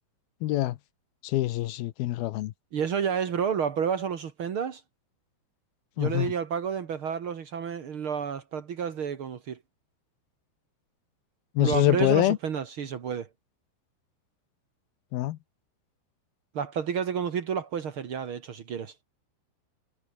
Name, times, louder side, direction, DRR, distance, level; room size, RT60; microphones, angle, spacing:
voice 1, 0.4-0.8 1.2-2.5 6.0-6.3 11.6-12.4 15.1-15.4, left 15 dB, 75° left, 2.4 m, -25 dB
voice 2, 2.7-4.8 6.0-9.6 11.6-13.3 16.5-18.9, right 7 dB, 80° right, 1.2 m, -30 dB
omnidirectional pair, 5.2 m